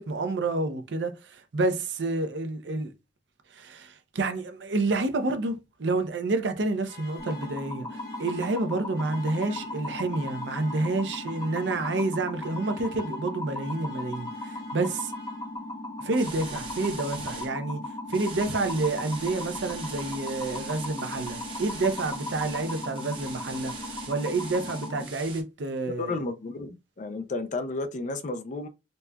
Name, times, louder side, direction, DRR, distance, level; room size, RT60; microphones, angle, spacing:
voice 1, 0.0-2.9 3.5-15.1 16.0-17.8 18.1-26.2, right 2 dB, 85° right, 0.6 m, -29 dB
sound 1, 6.8-15.9, left 4 dB, 65° left, 1.2 m, -50 dB
sound 2, 7.2-25.0, left 2 dB, 25° left, 1.0 m, -37 dB
sound 3, 16.1-17.5 18.1-25.4, right 4 dB, 30° right, 0.8 m, -42 dB
voice 2, 25.9-26.7 27.0-28.7, left 3 dB, 45° left, 0.4 m, -32 dB
4.0 x 2.3 x 2.2 m
head